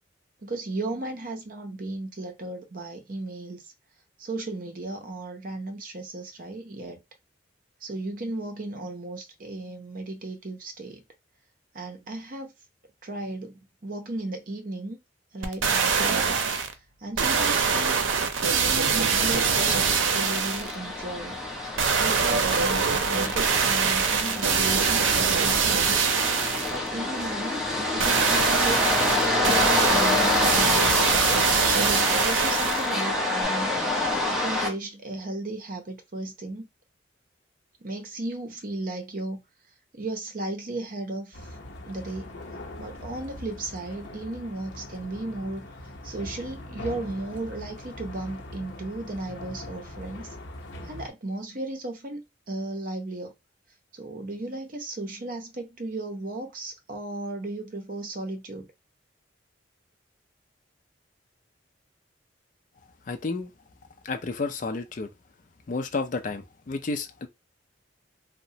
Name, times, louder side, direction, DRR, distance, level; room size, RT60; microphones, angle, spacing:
voice 1, 0.4-3.6 4.2-7.0 7.8-11.0 11.7-12.5 13.0-15.0 15.3-16.4 17.0-18.0 18.5-21.4 21.9-26.1 26.7-31.1 31.7-33.7 34.3-36.7 37.8-39.4 39.9-41.5 41.9-42.4 42.8-45.7 46.0-50.3 50.9-53.3 53.9-58.7, right 2 dB, 45° right, 0.6 m, -35 dB
sound 1, 15.4-16.7 17.2-20.7 21.8-26.8 28.0-33.0 33.4-33.5, right 5 dB, 85° right, 0.5 m, -23 dB
sound 2, 19.3-34.7, left 2 dB, ahead, 0.8 m, -27 dB
sound 3, 41.3-51.1, left 1 dB, 75° left, 0.8 m, -41 dB
voice 2, 63.1-63.5 64.0-65.1 65.7-67.3, left 3 dB, 45° left, 0.4 m, -31 dB
2.9 x 2.1 x 2.7 m
head